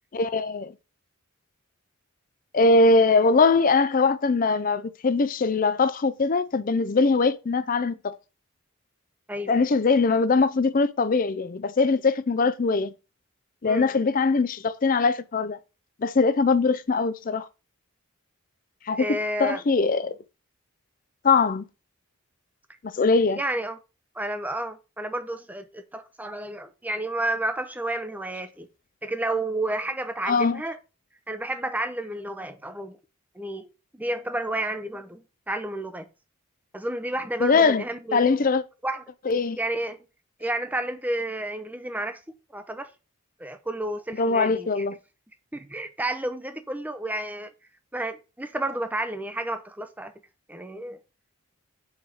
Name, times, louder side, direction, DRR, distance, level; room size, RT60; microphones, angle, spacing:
voice 1, 0.1-0.7 2.5-8.2 9.5-12.9 13.6-15.6 16.0-17.5 18.9-19.0 19.4-20.1 21.2-21.6 22.8-23.4 30.3-30.6 37.4-37.8 38.1-38.6 39.3-39.6 44.2-45.0, left 4 dB, 40° left, 0.4 m, -21 dB
voice 2, 19.0-19.6 23.4-23.8 24.1-28.7 29.0-30.8 31.3-33.0 33.3-36.1 36.7-38.2 38.8-39.0 39.6-40.0 40.4-42.2 42.5-42.9 43.4-44.9 45.5-47.5 47.9-50.1 50.5-51.0, right 1 dB, 5° right, 0.6 m, -31 dB
4.8 x 4.7 x 5.5 m
head